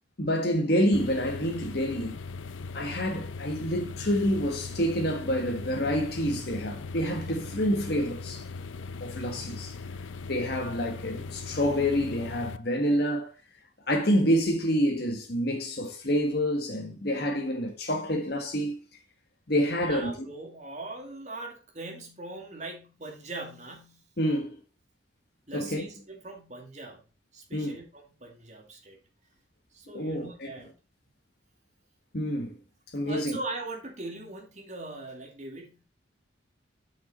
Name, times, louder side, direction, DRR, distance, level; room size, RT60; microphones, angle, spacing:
voice 1, 0.2-2.2 2.7-8.4 9.0-9.7 10.3-13.3 13.9-18.7 19.5-20.1 24.2-24.6 25.5-25.8 27.5-27.8 29.9-30.5 32.1-32.6 32.9-33.4, equal, 55° left, 1.5 m, -27 dB
sound 1, 0.9-12.6, left 4 dB, 85° left, 0.6 m, -39 dB
voice 2, 19.8-24.0 25.5-27.0 27.3-29.0 29.7-30.7 33.0-35.8, right 2 dB, 35° right, 2.5 m, -40 dB
8.4 x 6.3 x 4.4 m
head